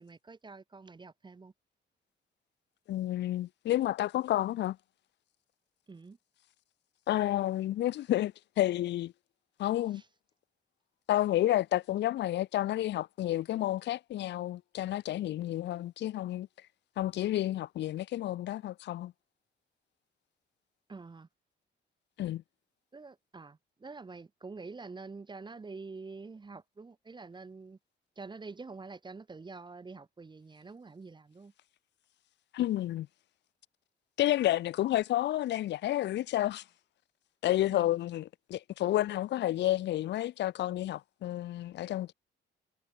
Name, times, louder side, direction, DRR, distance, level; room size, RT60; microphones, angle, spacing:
voice 1, 0.0-1.5 5.9-6.2 9.9-10.0 20.9-21.3 22.9-27.8 28.2-31.5 37.7-37.9, right 4 dB, 25° right, 0.9 m, -47 dB
voice 2, 2.9-4.8 7.1-9.1 9.6-10.0 11.1-16.5 17.0-19.1 22.2-22.4 32.5-33.1 34.2-36.6 37.4-42.1, left 14 dB, 60° left, 0.5 m, -30 dB
cardioid pair, 90°, 20 cm